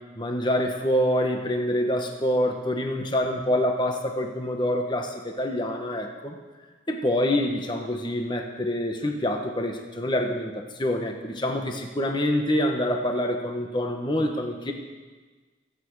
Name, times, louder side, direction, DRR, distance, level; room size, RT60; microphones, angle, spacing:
voice 1, 0.2-6.4 6.9-14.7, left 1 dB, 25° left, 3 dB, 1.3 m, -26 dB
25.5 x 8.9 x 4.8 m, 1.3 s
head